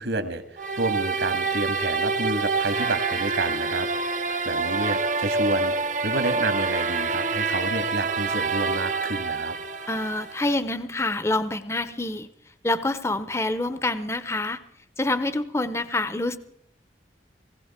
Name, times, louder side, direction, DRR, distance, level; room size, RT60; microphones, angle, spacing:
voice 1, 0.0-3.9 4.4-5.7 6.0-9.5, right 2 dB, 75° right, 7 dB, 2.1 m, -29 dB
sound 1, 0.6-10.5, right 4 dB, 40° right, 0.8 m, -27 dB
voice 2, 9.9-12.3 12.6-14.6 15.0-16.4, left 2 dB, 15° left, 12 dB, 0.7 m, -26 dB
19.5 x 16.5 x 4.4 m, 0.70 s
head